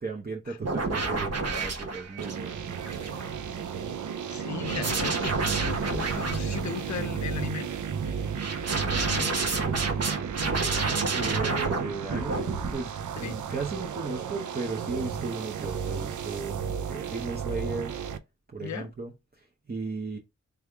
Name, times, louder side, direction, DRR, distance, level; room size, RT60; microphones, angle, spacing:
voice 1, 0.0-2.6 11.1-17.9 18.5-20.2, right 3 dB, 30° right, 0.8 m, -36 dB
sound 1, 0.6-3.4 4.6-6.9 8.4-11.8 12.1-12.7, right 3 dB, 55° right, 1.0 m, -30 dB
sound 2, 2.2-18.2, right 7 dB, 75° right, 0.5 m, -33 dB
voice 2, 4.3-7.7 8.1-8.3 8.9-9.6 11.5-11.6 13.2-13.4 18.6-18.9, left 8 dB, 65° left, 0.6 m, -37 dB
3.4 x 3.4 x 3.3 m
cardioid pair, 55°, 31 cm